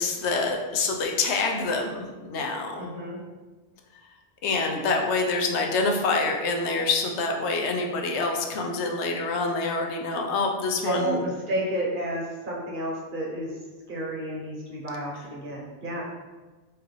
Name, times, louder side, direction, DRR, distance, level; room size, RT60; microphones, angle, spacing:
voice 1, 0.0-2.9 4.4-11.2, left 3 dB, 80° left, 2 dB, 0.9 m, -26 dB
voice 2, 2.8-3.2 10.8-13.5 13.9-16.0, right 1 dB, 50° right, -3 dB, 0.9 m, -31 dB
4.6 x 2.5 x 3.1 m, 1.2 s
omnidirectional pair, 1.1 m